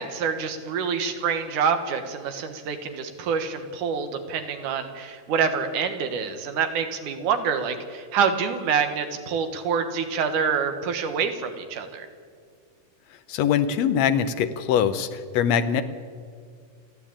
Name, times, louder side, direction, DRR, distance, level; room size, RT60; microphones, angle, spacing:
voice 1, 0.0-12.1, right 6 dB, 65° right, 7 dB, 2.7 m, -26 dB
voice 2, 13.3-15.8, left 8 dB, 75° left, 10 dB, 1.6 m, -22 dB
29.0 x 10.5 x 8.8 m, 2.1 s
omnidirectional pair, 4.1 m